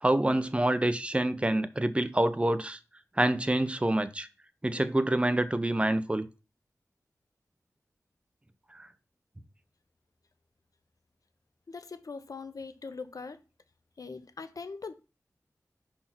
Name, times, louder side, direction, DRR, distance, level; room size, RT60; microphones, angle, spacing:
voice 1, 0.0-2.8 3.2-4.3 4.6-6.3 8.7-8.9, right 1 dB, 20° right, 0.7 m, -27 dB
voice 2, 11.7-13.4 14.0-14.9, left 4 dB, 70° left, 0.8 m, -41 dB
5.4 x 4.3 x 5.9 m
wide cardioid pair, 65°, 6 cm